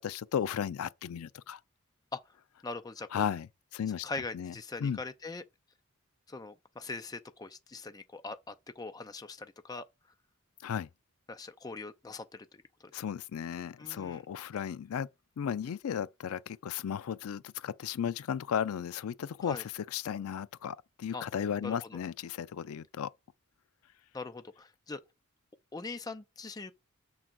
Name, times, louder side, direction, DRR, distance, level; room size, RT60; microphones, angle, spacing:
voice 1, 0.0-1.6 3.1-4.1 4.3-4.5 4.8-5.0 10.6-10.9 12.9-15.1 15.4-23.1, left 8 dB, 80° left, 0.4 m, -35 dB
voice 2, 2.6-3.2 4.0-5.4 6.3-9.9 11.3-13.0 13.8-14.2 19.4-19.6 21.1-21.3 21.6-22.0 24.1-25.0 25.7-26.7, left 3 dB, 15° left, 0.4 m, -42 dB
6.5 x 3.8 x 6.0 m
head